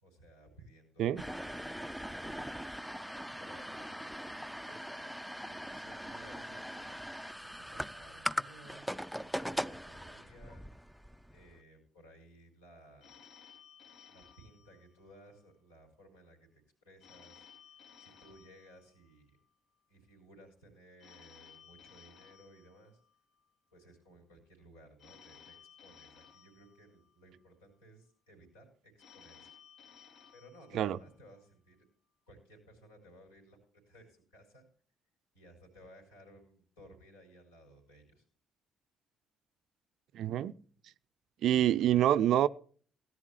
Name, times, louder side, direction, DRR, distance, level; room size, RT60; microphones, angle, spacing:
voice 1, 0.0-2.5 3.4-7.0 7.4-10.6 11.3-13.2 14.1-19.4 19.9-23.0 23.7-29.5 30.3-31.9 32.3-33.6 33.9-34.7 35.3-38.3, right 1 dB, 75° left, 5.1 m, -58 dB
sound 1, 1.2-11.5, equal, ahead, 0.5 m, -40 dB
Telephone, 13.0-15.5 17.0-19.5 21.0-23.5 25.0-27.5 29.0-31.5, left 7 dB, 55° left, 1.4 m, -59 dB
voice 2, 40.1-40.5 41.4-42.5, right 12 dB, 55° right, 0.4 m, -26 dB
18.0 x 11.0 x 3.0 m
figure-of-eight pair, 45°, 0 cm